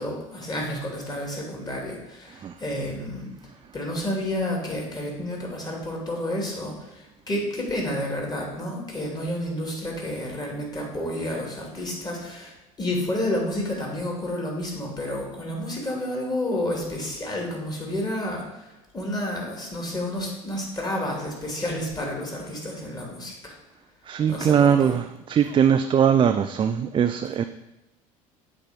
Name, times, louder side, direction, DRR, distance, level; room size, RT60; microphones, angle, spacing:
voice 1, 0.0-3.3 3.7-12.5 12.8-18.4 18.9-23.5 24.3-25.0, left 1 dB, 25° left, -1 dB, 2.7 m, -30 dB
voice 2, 24.1-27.4, right 8 dB, 30° right, 8 dB, 0.4 m, -21 dB
7.8 x 3.5 x 5.2 m, 1.0 s
hypercardioid pair, 65°, 18 cm